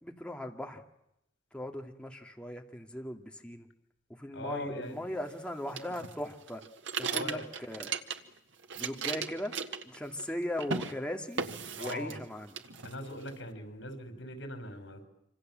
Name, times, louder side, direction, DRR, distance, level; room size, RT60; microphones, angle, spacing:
voice 1, 0.0-0.8 1.5-3.7 4.2-6.6 7.0-7.9 8.7-9.6 9.8-11.5 11.8-12.6, left 1 dB, 5° left, 2 dB, 2.4 m, -38 dB
voice 2, 4.3-5.2 7.1-7.4 11.7-12.2 12.8-15.0, left 1 dB, 80° left, 7 dB, 5.9 m, -40 dB
sound 1, 5.7-8.4 8.6-10.3 10.6-10.9 11.4-12.3 12.5-13.3, right 5 dB, 85° right, 1.7 m, -36 dB
27.0 x 26.0 x 7.8 m, 0.83 s
head